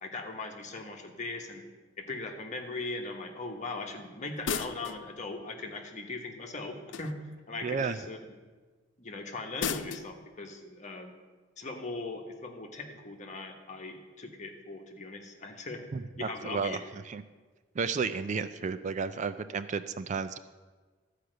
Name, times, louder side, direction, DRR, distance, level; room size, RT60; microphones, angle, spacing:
voice 1, 0.0-1.6 2.0-7.2 7.5-8.2 9.0-11.1 11.6-15.8 16.2-16.8, left 3 dB, 40° left, 2 dB, 1.3 m, -39 dB
sound 1, 4.4-5.1 6.9-7.4 9.6-10.1, left 7 dB, 65° left, 0.5 m, -34 dB
voice 2, 7.6-8.0 15.9-17.2 17.7-20.4, right 5 dB, 40° right, 12 dB, 0.3 m, -33 dB
13.0 x 5.0 x 7.8 m, 1.4 s
head